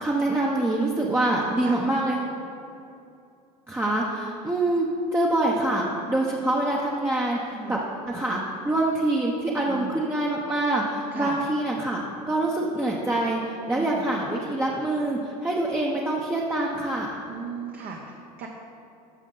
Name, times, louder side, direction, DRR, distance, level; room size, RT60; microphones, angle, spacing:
voice 1, 0.0-2.2 3.7-7.8 8.1-17.2, right 1 dB, 10° right, -3 dB, 0.8 m, -25 dB
voice 2, 7.4-7.8 9.7-10.0 11.1-11.5 13.7-14.2 17.3-18.5, right 6 dB, 50° right, 0 dB, 1.0 m, -37 dB
13.0 x 5.2 x 3.9 m, 2.7 s
supercardioid pair, 100°, 20 cm